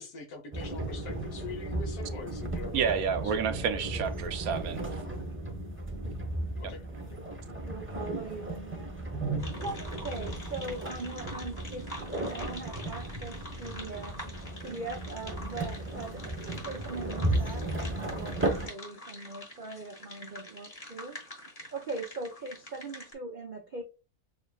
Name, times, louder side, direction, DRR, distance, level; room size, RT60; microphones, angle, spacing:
voice 1, 0.0-3.4 6.6-6.8 7.1-7.2, left 4 dB, 80° left, 1.5 m, -43 dB
sound 1, 0.5-18.7, right 1 dB, 10° right, 0.6 m, -35 dB
voice 2, 2.7-4.9, right 7 dB, 75° right, 1.0 m, -29 dB
voice 3, 7.6-8.9 9.6-14.1 14.6-16.2 16.6-21.2 21.7-23.8, right 3 dB, 60° right, 0.5 m, -40 dB
sound 2, 9.4-23.1, left 1 dB, 35° left, 1.5 m, -46 dB
6.8 x 2.3 x 2.2 m
omnidirectional pair, 1.6 m